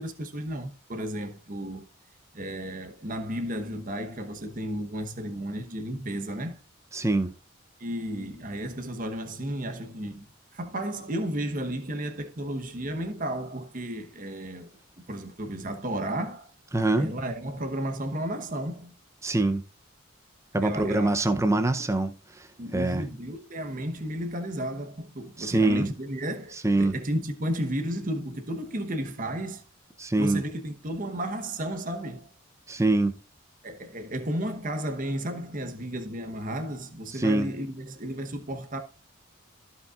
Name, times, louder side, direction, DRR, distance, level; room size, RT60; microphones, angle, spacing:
voice 1, 0.0-1.8 2.3-6.6 7.8-10.3 10.5-14.7 15.0-16.5 17.0-18.9 20.6-21.1 21.4-21.9 22.6-29.6 30.2-32.3 33.6-38.8, right 1 dB, 40° right, 1.0 m, -33 dB
voice 2, 6.9-7.3 16.7-17.1 19.2-19.6 20.5-22.1 22.7-23.0 25.4-25.9 26.6-26.9 30.0-30.4 32.7-33.1 37.2-37.5, right 2 dB, 15° right, 0.6 m, -24 dB
15.0 x 5.4 x 2.4 m
head